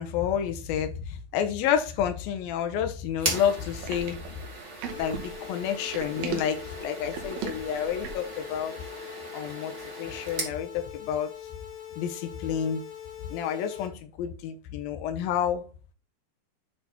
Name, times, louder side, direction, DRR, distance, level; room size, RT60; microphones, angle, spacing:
voice 1, 0.0-4.2 5.0-8.7 9.3-9.7 10.0-11.3 12.0-12.8 13.3-13.9 14.2-15.7, left 9 dB, 85° left, 6 dB, 2.6 m, -29 dB
sound 1, 3.2-10.6, right 2 dB, 35° right, 1.2 m, -38 dB
sound 2, 3.6-8.4, right 7 dB, 85° right, 3.0 m, -37 dB
sound 3, 4.9-13.9, left 10 dB, 60° left, 1.4 m, -43 dB
8.5 x 4.0 x 4.1 m, 0.33 s
omnidirectional pair, 4.3 m